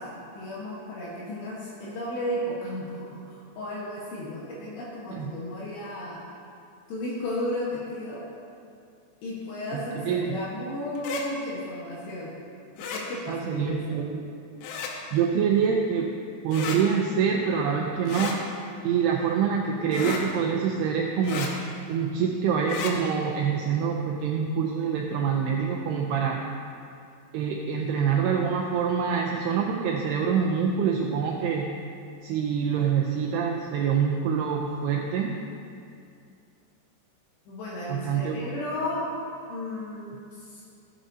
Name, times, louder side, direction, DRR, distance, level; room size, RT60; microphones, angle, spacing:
voice 1, 0.0-6.2 6.9-8.3 9.2-12.4 12.8-14.0 37.5-39.1 39.5-40.6, left 1 dB, 70° left, -6 dB, 3.2 m, -34 dB
voice 2, 9.7-10.4 13.3-14.2 15.1-16.1 16.4-18.4 18.8-21.6 21.9-26.4 27.3-31.7 32.2-35.3 37.9-38.4, right 7 dB, 85° right, 0 dB, 2.3 m, -26 dB
sound 1, 11.0-11.2 12.8-13.0 14.6-14.9 16.5-16.8 18.1-18.4 19.9-20.2 21.2-21.5 22.6-22.9, left 6 dB, 90° left, 3.2 m, -33 dB
14.5 x 9.0 x 2.7 m, 2.4 s
omnidirectional pair, 5.3 m